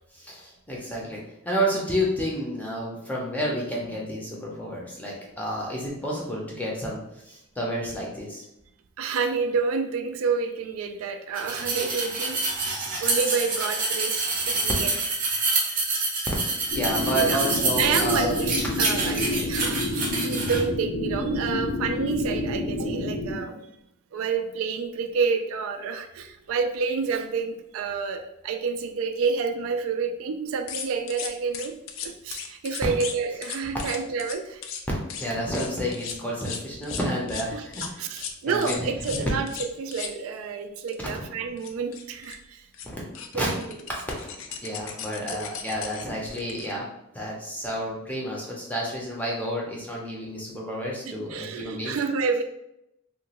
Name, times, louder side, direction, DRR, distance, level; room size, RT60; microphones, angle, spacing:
voice 1, 0.1-8.4 16.5-18.4 35.2-38.1 38.5-39.2 41.0-41.2 42.8-43.0 43.3-43.5 44.2-46.9 47.1-52.0, equal, 5° left, -4 dB, 0.5 m, -30 dB
voice 2, 9.0-12.6 13.0-14.9 17.2-17.4 17.8-18.5 18.8-23.7 24.1-34.6 37.5-42.6 43.3-43.8 45.2-45.4 51.1-52.4, right 5 dB, 70° right, 7 dB, 0.3 m, -29 dB
sound 1, 11.3-20.6, right 3 dB, 40° right, 0.6 m, -27 dB
sound 2, 16.7-23.4, left 2 dB, 90° left, 0.7 m, -29 dB
sound 3, 30.7-33.2 33.4-34.4 34.6-34.8 35.1-35.3 35.5-37.5 37.7-37.9 38.2-38.3 38.6-40.1 40.9-41.0 41.3-41.4 41.6-42.4 42.7-42.9 43.1-46.7, left 7 dB, 60° left, 0.3 m, -36 dB
2.9 x 2.3 x 2.9 m, 0.84 s
head